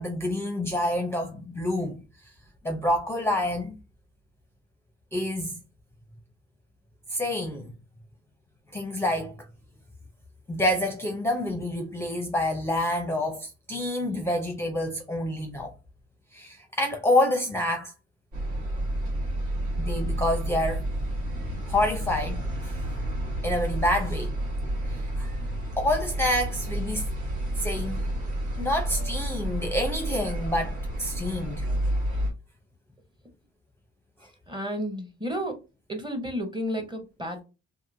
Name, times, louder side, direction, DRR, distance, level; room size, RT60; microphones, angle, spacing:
voice 1, 0.0-2.0 2.6-3.7 5.1-5.5 7.1-7.7 8.7-9.3 10.5-15.7 16.3-17.9 19.8-20.8 21.7-22.7 23.4-24.3 25.2-25.3 25.8-27.1 27.6-28.0 28.6-31.7, left 1 dB, 10° left, 0.6 m, -27 dB
sound 1, 18.3-32.3, right 1 dB, 70° right, 1.5 m, -30 dB
voice 2, 34.5-35.6 35.9-37.4, equal, 15° right, 0.9 m, -32 dB
2.8 x 2.6 x 2.6 m
cardioid pair, 90°, 30 cm